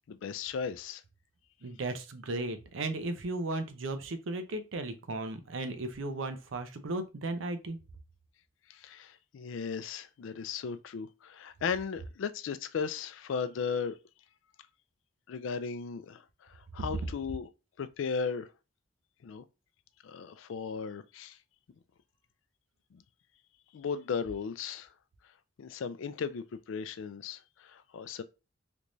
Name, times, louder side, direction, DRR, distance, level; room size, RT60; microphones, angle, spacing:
voice 1, 0.1-1.0 8.7-14.0 15.3-17.5 17.8-18.5 19.2-19.4 20.0-21.4 22.9-23.0 23.7-24.9 25.6-28.2, left 6 dB, 75° left, 0.3 m, -36 dB
voice 2, 1.6-7.8 16.9-17.0, right 2 dB, 75° right, 0.6 m, -35 dB
3.4 x 3.0 x 2.6 m
head